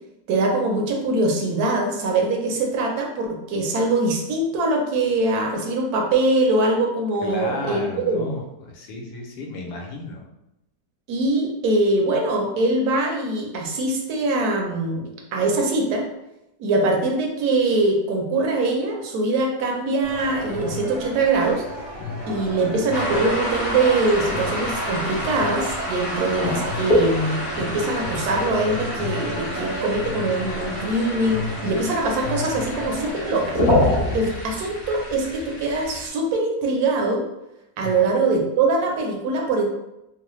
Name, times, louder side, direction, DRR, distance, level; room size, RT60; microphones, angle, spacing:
voice 1, 0.3-8.3 11.1-16.1 16.6-21.6 22.3-33.6 34.1-37.2 37.8-39.6, right 2 dB, 75° right, 0 dB, 1.1 m, -23 dB
voice 2, 7.2-10.2 37.8-38.0, left 2 dB, 80° left, 1 dB, 1.2 m, -33 dB
sound 1, 20.0-33.1, left 1 dB, 30° left, 1.1 m, -33 dB
sound 2, 22.9-36.1, left 1 dB, 50° left, 0.8 m, -27 dB
3.1 x 2.0 x 3.0 m, 0.87 s
omnidirectional pair, 1.7 m